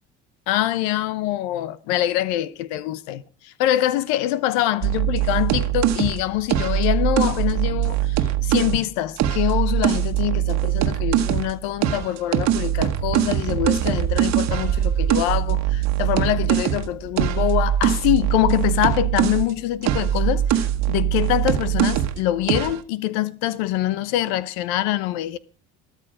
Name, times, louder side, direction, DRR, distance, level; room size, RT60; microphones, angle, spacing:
voice 1, 0.5-25.4, left 14 dB, 80° left, 1.0 m, -24 dB
sound 1, 4.8-8.8 9.2-11.5 11.8-19.5 19.8-22.2 22.5-22.8, right 11 dB, 60° right, 1.4 m, -22 dB
13.5 x 13.0 x 5.0 m
supercardioid pair, 90°, 30 cm